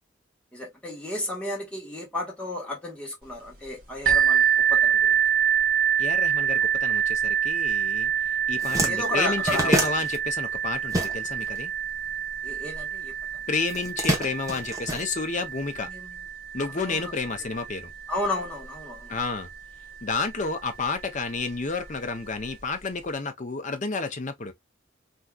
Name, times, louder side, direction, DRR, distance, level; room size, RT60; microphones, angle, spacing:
voice 1, 0.5-5.2 8.9-9.8 12.4-13.1 15.8-16.2 16.7-17.3 18.1-19.2, left 1 dB, 5° left, 1.3 m, -33 dB
sound 1, 4.1-19.6 20.4-20.5 21.0-21.1, right 8 dB, 45° right, 1.2 m, -26 dB
voice 2, 6.0-8.1 8.5-11.7 13.5-15.9 16.5-17.9 19.1-19.5 20.0-24.5, left 4 dB, 35° left, 0.6 m, -30 dB
sound 2, 8.0-8.1 8.4-11.6 11.8-13.0 13.7-15.7, right 1 dB, 15° right, 0.9 m, -28 dB
3.4 x 2.7 x 2.3 m
head